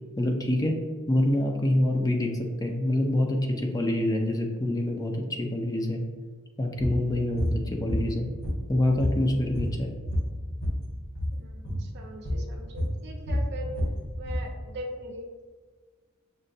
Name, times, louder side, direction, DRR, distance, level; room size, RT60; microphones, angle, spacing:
voice 1, 0.2-0.8 1.1-2.3 2.6-6.0 6.6-8.3 8.7-9.9, left 1 dB, 20° left, 2 dB, 0.4 m, -26 dB
sound 1, 6.8-7.0 7.4-7.6 7.9-8.7 9.0-10.8 11.1-11.4 11.6-11.8 12.3-12.5 12.8-14.5, equal, 80° left, 1.4 m, -29 dB
voice 2, 11.3-13.7 14.2-15.3, right 1 dB, 55° right, 2 dB, 0.6 m, -41 dB
6.3 x 2.2 x 2.6 m, 1.5 s
head